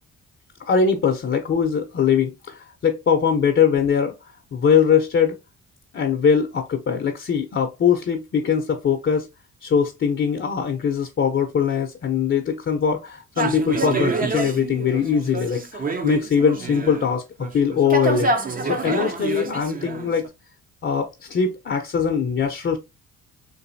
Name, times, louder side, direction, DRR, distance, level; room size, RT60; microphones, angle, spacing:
voice 1, 0.6-4.1 4.5-5.4 5.9-9.3 9.6-18.3 18.6-20.3 20.8-22.8, left 6 dB, 40° left, 0.7 m, -21 dB
sound 1, 13.4-17.1 17.4-20.3, right 4 dB, 30° right, 0.7 m, -27 dB
3.9 x 2.6 x 2.6 m
cardioid pair, 90°, 30 cm